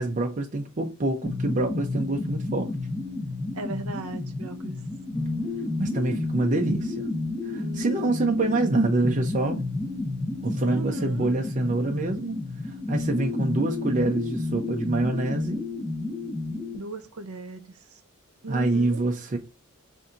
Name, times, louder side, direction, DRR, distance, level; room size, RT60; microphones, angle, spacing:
voice 1, 0.0-2.7 5.8-7.1 7.4-9.6 10.4-12.4 12.9-15.7 18.5-19.4, right 2 dB, 35° right, 0.6 m, -26 dB
sound 1, 1.2-16.8, left 2 dB, 10° left, 1.1 m, -31 dB
voice 2, 3.5-4.8 7.4-8.4 10.7-11.3 16.7-18.0 18.4-19.0, right 3 dB, 90° right, 0.8 m, -37 dB
4.1 x 2.6 x 3.6 m
head